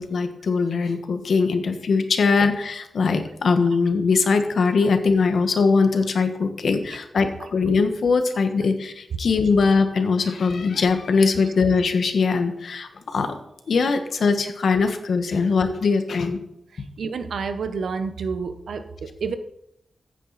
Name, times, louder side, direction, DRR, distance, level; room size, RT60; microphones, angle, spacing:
voice 1, 0.0-13.4 13.7-16.4 16.8-16.9, left 4 dB, 70° left, 7 dB, 1.4 m, -21 dB
voice 2, 16.7-19.3, right 5 dB, 90° right, 9 dB, 1.1 m, -29 dB
15.0 x 9.2 x 4.2 m, 0.79 s
wide cardioid pair, 155°, 0 cm